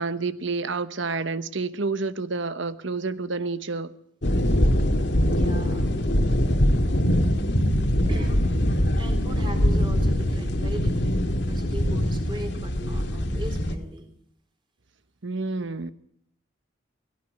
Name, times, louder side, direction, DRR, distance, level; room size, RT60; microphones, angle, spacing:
voice 1, 0.0-3.9 15.2-15.9, right 3 dB, 70° right, 1.1 m, -29 dB
sound 1, 4.2-13.7, equal, 60° left, 2.0 m, -23 dB
voice 2, 5.2-5.9 8.1-8.7 9.0-14.1, equal, 25° right, 3.7 m, -38 dB
18.5 x 17.0 x 9.5 m
head